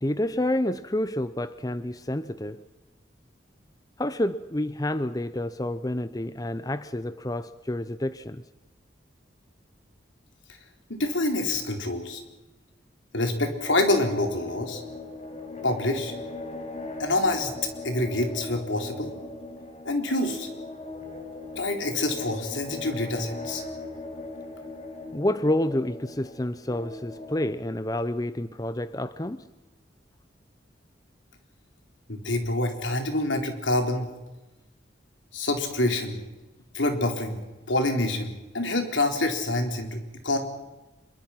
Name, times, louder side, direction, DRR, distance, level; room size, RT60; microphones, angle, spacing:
voice 1, 0.0-2.6 4.0-8.4 25.1-29.4, left 1 dB, 20° left, 13 dB, 0.7 m, -29 dB
voice 2, 10.9-12.2 13.1-14.8 15.6-16.1 17.0-17.5 17.8-19.1 19.8-20.5 21.6-23.6 32.1-34.1 35.3-36.2 36.7-37.4 37.7-40.0 40.2-40.4, left 2 dB, 90° left, 4 dB, 4.1 m, -26 dB
sound 1, 13.6-27.5, left 2 dB, 35° left, 5.3 m, -39 dB
26.0 x 23.0 x 5.9 m, 1.1 s
head